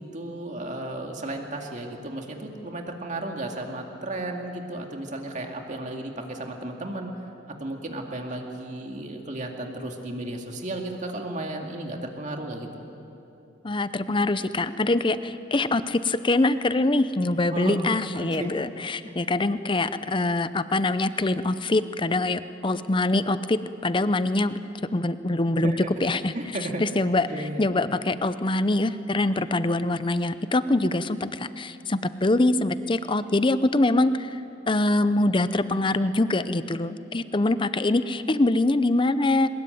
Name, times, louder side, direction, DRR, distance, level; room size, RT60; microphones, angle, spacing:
voice 1, 0.0-7.1 7.5-12.8 17.5-17.9 18.1-18.5 25.6-25.9 26.3-26.8 27.3-27.7, right 1 dB, 40° right, 2 dB, 2.3 m, -34 dB
voice 2, 13.6-25.7 26.0-26.3 26.8-27.3 27.6-39.5, left 2 dB, 25° left, 13 dB, 0.6 m, -24 dB
22.5 x 20.5 x 9.3 m, 2.9 s
head